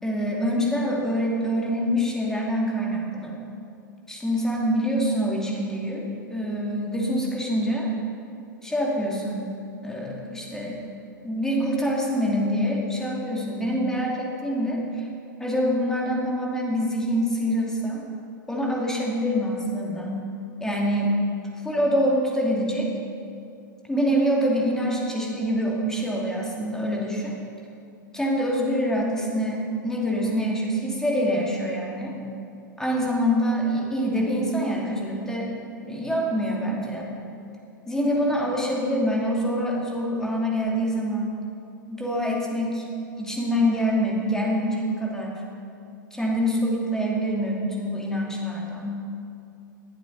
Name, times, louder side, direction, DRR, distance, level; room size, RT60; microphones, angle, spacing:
voice 1, 0.0-3.4 4.1-6.0 6.3-7.9 8.6-9.6 9.8-10.8 11.2-15.1 15.4-18.0 18.5-20.2 20.6-21.2 21.6-22.9 23.8-27.3 28.1-32.2 32.8-35.5 35.8-37.1 37.9-41.3 41.9-42.9 43.2-45.3 46.1-49.0, equal, 5° left, -3 dB, 2.6 m, -25 dB
20.0 x 11.0 x 4.1 m, 2.5 s
figure-of-eight pair, 95°, 11 cm